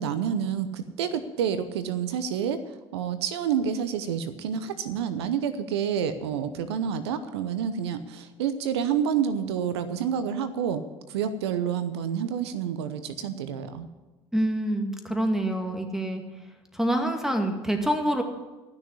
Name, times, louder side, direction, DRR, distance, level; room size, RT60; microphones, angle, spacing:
voice 1, 0.0-2.6 2.9-10.8 11.1-13.9, right 8 dB, 85° right, 11 dB, 0.8 m, -28 dB
voice 2, 14.3-16.2 16.7-18.2, right 1 dB, 5° right, 4 dB, 2.2 m, -26 dB
13.5 x 6.4 x 9.5 m, 1.2 s
hypercardioid pair, 65°, 14 cm